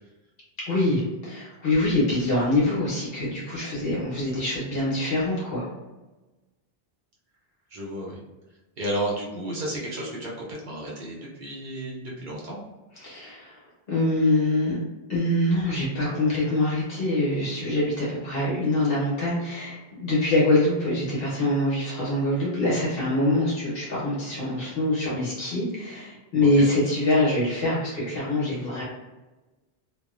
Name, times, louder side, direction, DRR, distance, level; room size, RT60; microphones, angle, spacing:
voice 1, 0.7-5.7 13.0-13.6 13.9-14.8 15.1-28.8, left 1 dB, 65° left, -6 dB, 1.3 m, -24 dB
voice 2, 7.7-8.2 8.8-12.6 26.4-26.6, right 1 dB, 55° right, -4 dB, 0.8 m, -32 dB
3.1 x 2.1 x 2.4 m, 1.1 s
omnidirectional pair, 1.0 m